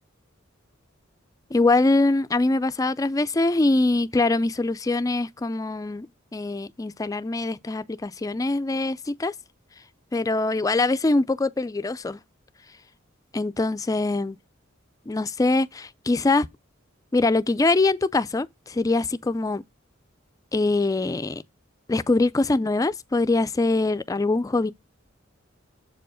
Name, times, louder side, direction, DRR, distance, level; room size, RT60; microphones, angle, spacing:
voice 1, 1.5-6.1 6.3-9.3 10.1-12.2 13.3-14.4 15.1-16.5 17.1-19.6 20.5-21.4 21.9-24.7, left 2 dB, 15° left, 0.3 m, -23 dB
7.3 x 4.6 x 5.0 m
head